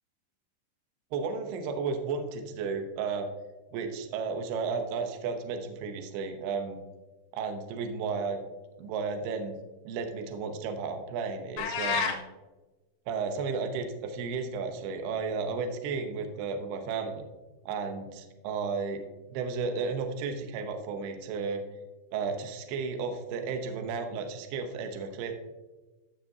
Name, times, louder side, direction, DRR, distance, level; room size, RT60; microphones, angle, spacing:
voice 1, 1.1-3.3 3.7-6.8 7.3-8.4 8.8-9.5 9.9-12.2 13.1-17.2 17.7-19.0 19.3-21.6 22.1-25.3, right 5 dB, 75° right, 6 dB, 2.6 m, -33 dB
sound 1, 11.6-12.2, left 5 dB, 85° left, 3.5 m, -28 dB
15.0 x 6.1 x 2.8 m, 1.1 s
omnidirectional pair, 5.5 m